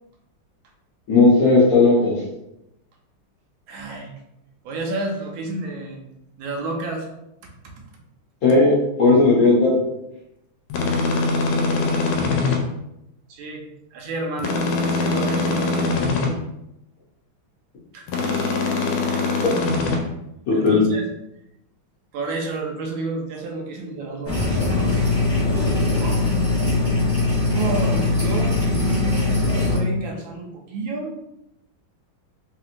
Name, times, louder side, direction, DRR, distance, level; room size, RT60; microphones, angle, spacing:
voice 1, 1.1-2.2 8.4-8.7 9.0-9.7 20.5-20.8, left 3 dB, 60° left, -6 dB, 1.0 m, -15 dB
voice 2, 3.7-4.1 4.6-6.0 6.4-7.1 7.6-7.7 13.3-13.6 13.9-15.7 17.9-18.1 19.2-19.4 20.5-21.0 22.1-24.6 25.4-26.2 27.5-31.2, right 2 dB, 80° right, 1 dB, 1.3 m, -30 dB
sound 1, 10.7-12.6 14.4-16.3 18.1-20.0, left 3 dB, 75° left, 1.4 m, -22 dB
sound 2, 24.2-29.8, left 2 dB, 15° left, 0.4 m, -21 dB
3.4 x 2.9 x 2.5 m, 0.85 s
omnidirectional pair, 2.3 m